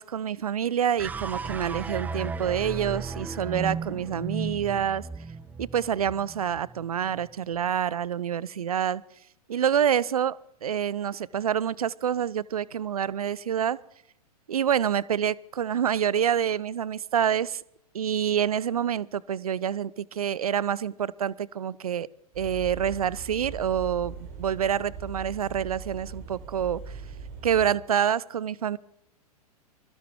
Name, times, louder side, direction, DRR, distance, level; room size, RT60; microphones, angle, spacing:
voice 1, 0.0-5.1 5.6-9.0 9.5-13.8 14.5-17.6 17.9-22.1 22.4-26.9 27.4-28.8, right 9 dB, 65° right, 23 dB, 0.5 m, -27 dB
sound 1, 1.0-7.4, right 5 dB, 10° right, 0.4 m, -35 dB
sound 2, 22.3-27.7, right 5 dB, 40° right, 3.1 m, -40 dB
24.5 x 10.5 x 3.5 m, 0.78 s
figure-of-eight pair, 105°, 20 cm